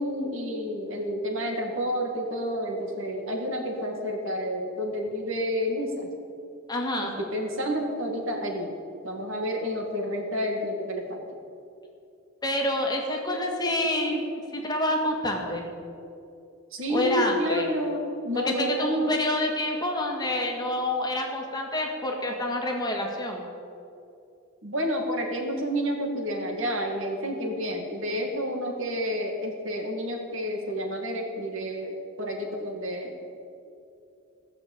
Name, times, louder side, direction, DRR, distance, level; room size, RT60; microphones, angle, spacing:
voice 1, 0.0-6.1 7.0-8.7 9.0-11.2 16.7-19.1 24.6-33.1, equal, 65° right, 2 dB, 2.2 m, -30 dB
voice 2, 6.7-7.2 12.4-15.7 16.9-17.7 18.5-23.4, left 1 dB, 20° left, 1 dB, 1.9 m, -27 dB
16.0 x 6.7 x 8.7 m, 2.6 s
head